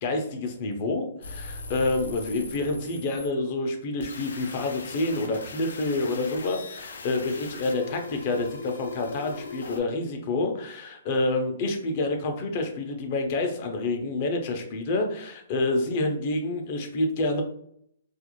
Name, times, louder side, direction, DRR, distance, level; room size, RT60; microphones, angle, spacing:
voice 1, 0.0-17.4, left 2 dB, 40° left, 4 dB, 0.5 m, -28 dB
sound 1, 1.2-3.3 4.0-9.8, left 3 dB, 90° left, 0.5 m, -40 dB
2.4 x 2.0 x 2.9 m, 0.67 s
hypercardioid pair, 150°, 0 cm